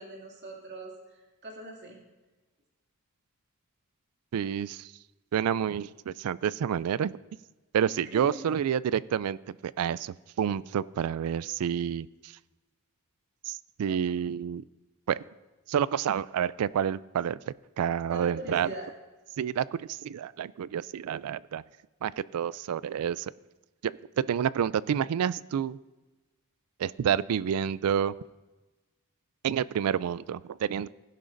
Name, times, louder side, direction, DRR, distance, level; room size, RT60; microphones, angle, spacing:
voice 1, 0.0-2.0 8.1-8.5 18.1-18.9, right 2 dB, 50° right, -1 dB, 2.4 m, -41 dB
voice 2, 4.3-4.9 5.3-7.2 7.7-9.4 9.6-12.3 13.5-14.6 15.1-15.2 15.7-17.4 17.8-18.7 19.4-21.6 22.0-23.3 23.8-25.8 26.8-28.1 29.4-30.9, right 8 dB, 75° right, 20 dB, 0.3 m, -29 dB
16.0 x 11.0 x 2.6 m, 1.2 s
head